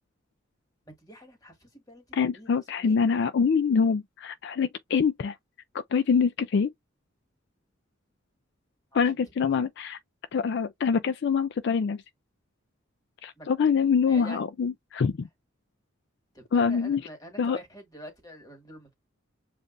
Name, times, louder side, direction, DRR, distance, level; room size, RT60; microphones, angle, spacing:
voice 1, 0.9-3.0 8.9-9.0 9.5-9.6 13.4-13.5 14.1-14.4 16.3-18.9, equal, 20° left, 1.9 m, -46 dB
voice 2, 2.1-5.4 5.7-6.7 8.9-10.0 10.3-12.0 13.2-15.3 16.5-17.0 17.4-17.6, left 6 dB, 60° left, 0.4 m, -25 dB
7.1 x 2.5 x 2.6 m
head